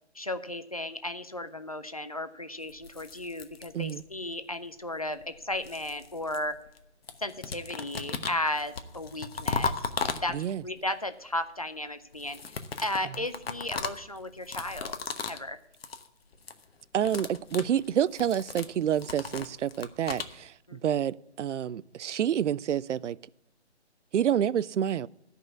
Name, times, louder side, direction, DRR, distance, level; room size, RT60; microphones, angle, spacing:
voice 1, 0.1-6.6 7.2-9.9 10.2-12.4 12.8-15.0 15.3-15.6 20.7-21.0, left 1 dB, 35° left, 0.4 m, -35 dB
sound 1, 2.7-4.3 5.2-6.8 7.1-10.7 12.1-15.5 15.7-16.1 16.3-16.6 16.9-20.3, left 5 dB, 60° left, 1.0 m, -36 dB
voice 2, 16.9-23.2 24.1-25.1, right 9 dB, 85° right, 0.5 m, -28 dB
12.5 x 5.5 x 8.3 m
hypercardioid pair, 170°, 35 cm